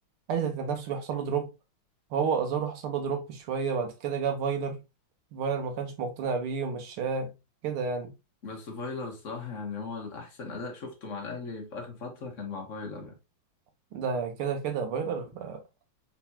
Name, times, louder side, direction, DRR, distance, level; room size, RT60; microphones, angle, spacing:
voice 1, 0.3-1.5 2.1-4.8 5.3-7.3 7.6-8.1 13.9-15.6, right 6 dB, 80° right, 2.0 m, -30 dB
voice 2, 8.4-13.1, left 4 dB, 40° left, 1.4 m, -38 dB
4.7 x 4.0 x 2.8 m
omnidirectional pair, 2.4 m